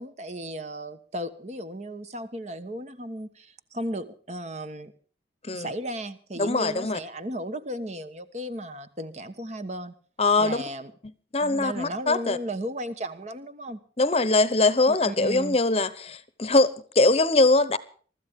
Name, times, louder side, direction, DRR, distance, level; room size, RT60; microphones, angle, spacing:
voice 1, 0.0-4.9 5.5-9.9 10.4-10.9 11.4-13.8 14.9-15.6, right 1 dB, 40° right, 1.3 m, -35 dB
voice 2, 6.4-7.0 10.2-10.6 11.3-12.4 14.0-17.8, left 2 dB, 35° left, 0.9 m, -22 dB
23.5 x 13.5 x 3.7 m
head